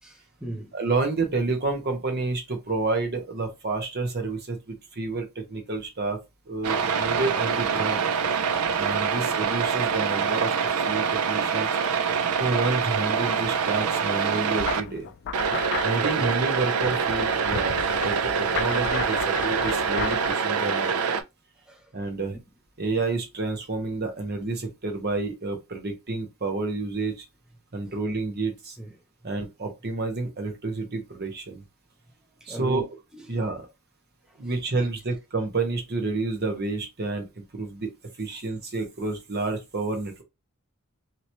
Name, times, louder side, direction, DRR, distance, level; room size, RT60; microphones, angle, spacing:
voice 1, 0.0-0.7 16.0-16.1 21.7-21.8 28.8-28.9 32.4-32.8 34.4-34.5, right 1 dB, 5° right, 0.6 m, -36 dB
voice 2, 0.7-6.2 6.5-8.1 8.7-10.5 10.8-11.7 12.4-15.1 15.8-21.0 21.9-22.4 22.8-27.2 27.7-28.8 29.2-31.6 32.5-33.0 33.3-33.7 34.4-37.3 37.5-37.9 38.2-40.2, right 3 dB, 50° right, 1.1 m, -29 dB
sound 1, 6.6-14.8 15.3-21.2, right 6 dB, 85° right, 0.5 m, -25 dB
sound 2, 14.6-20.3, left 7 dB, 55° left, 0.3 m, -35 dB
3.0 x 2.9 x 2.7 m
head